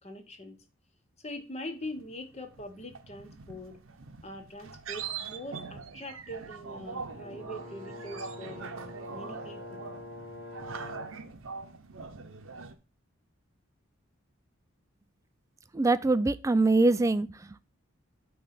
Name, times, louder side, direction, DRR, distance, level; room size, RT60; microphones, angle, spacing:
voice 1, 0.0-0.6 1.2-3.8 4.2-9.8, left 1 dB, 30° left, 1.0 m, -43 dB
sound 1, 2.0-12.7, right 5 dB, 80° right, 0.9 m, -43 dB
Brass instrument, 7.1-11.2, left 1 dB, 50° left, 2.8 m, -44 dB
voice 2, 15.7-17.6, right 2 dB, 15° right, 0.3 m, -24 dB
8.9 x 3.2 x 5.7 m
head